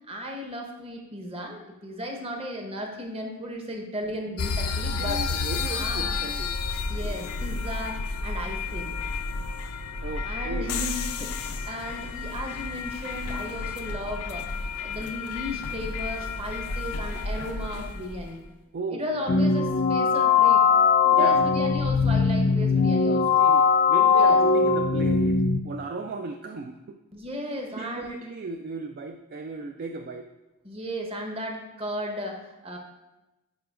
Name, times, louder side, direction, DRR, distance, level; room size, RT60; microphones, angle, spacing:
voice 1, 0.1-5.2 5.6-6.2 6.9-8.9 10.2-14.5 14.8-18.4 18.9-20.6 21.0-23.4 24.2-24.4 27.1-28.1 30.6-32.8, equal, 25° right, 2 dB, 0.9 m, -35 dB
sound 1, 4.4-18.3, left 4 dB, 90° left, 0.5 m, -31 dB
voice 2, 4.9-6.6 10.0-10.8 18.7-19.5 21.1-21.4 23.4-25.4 25.6-27.0 27.8-30.3, right 3 dB, 40° right, 6 dB, 0.3 m, -36 dB
sound 2, 19.3-25.6, left 5 dB, 35° left, 0.4 m, -20 dB
10.5 x 5.0 x 2.4 m, 1.0 s
head